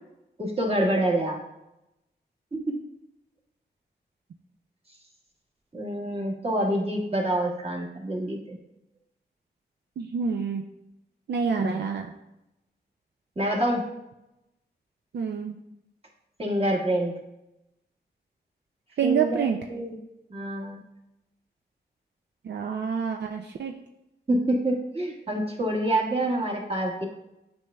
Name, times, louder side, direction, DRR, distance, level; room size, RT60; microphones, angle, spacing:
voice 1, 0.4-1.4 2.5-2.8 5.7-8.6 11.6-11.8 13.4-13.9 16.4-17.1 19.0-20.0 20.3-20.8 24.3-27.1, right 1 dB, 35° right, -2 dB, 1.6 m, -27 dB
voice 2, 10.0-10.6 11.3-12.1 15.1-15.6 19.0-19.6 22.4-23.7, right 6 dB, 75° right, 3 dB, 0.4 m, -27 dB
7.9 x 5.4 x 2.3 m, 0.89 s
cardioid pair, 60°, 18 cm